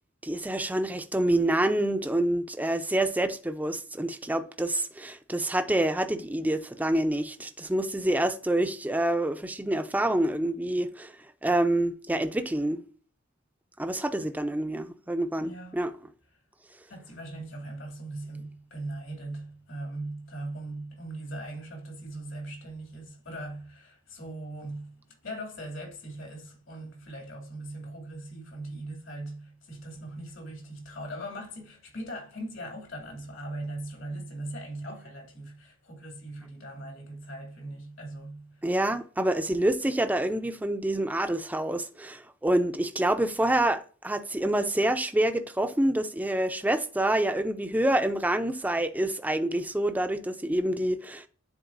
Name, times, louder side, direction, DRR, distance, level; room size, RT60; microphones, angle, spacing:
voice 1, 0.2-11.1 11.4-12.8 13.8-15.9 38.6-51.3, right 1 dB, 10° right, 0.5 m, -27 dB
voice 2, 15.4-15.8 16.9-38.7, right 1 dB, 75° left, 2.4 m, -40 dB
10.0 x 4.0 x 2.5 m
head